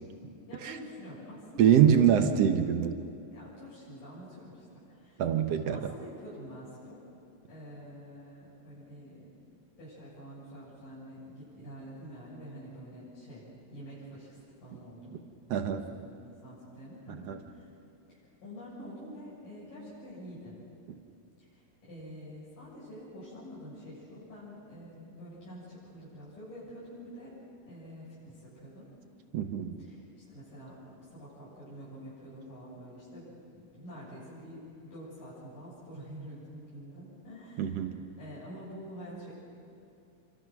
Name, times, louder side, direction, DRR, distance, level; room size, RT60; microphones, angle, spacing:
voice 1, 0.5-2.3 3.3-5.2 5.7-7.0 7.5-13.5 13.7-15.2 15.6-17.7 18.1-20.6 21.4-27.4 27.7-28.9 29.8-30.0 30.3-37.8 38.2-39.3, equal, 75° left, -10 dB, 9.3 m, -47 dB
voice 2, 1.6-3.0 5.2-5.8 15.5-15.8 17.3-17.4 29.3-29.8 37.6-38.0, right 9 dB, 65° right, 7 dB, 1.8 m, -24 dB
28.0 x 24.5 x 6.2 m, 2.7 s
omnidirectional pair, 3.9 m